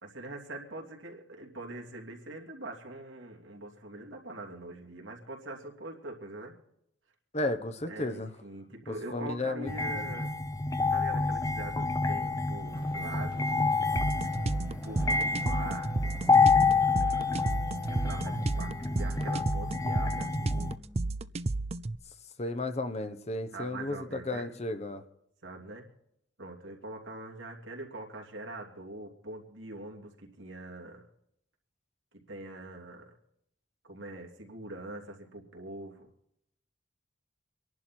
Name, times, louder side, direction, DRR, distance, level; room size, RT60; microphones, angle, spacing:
voice 1, 0.0-6.5 7.9-10.3 10.9-13.5 14.7-16.2 17.9-20.7 23.5-24.5 25.4-25.9 26.4-31.1 32.1-33.1 33.8-36.1, right 2 dB, 90° right, 1 dB, 3.0 m, -43 dB
voice 2, 7.3-8.3 8.9-10.1 22.4-25.0, left 2 dB, 35° left, 9 dB, 1.0 m, -34 dB
sound 1, 9.7-20.8, left 4 dB, 20° left, 0.6 m, -28 dB
sound 2, 12.1-21.3, equal, 5° right, 1.0 m, -50 dB
sound 3, 14.0-22.0, right 2 dB, 35° right, 0.5 m, -32 dB
25.5 x 11.0 x 4.5 m, 0.77 s
head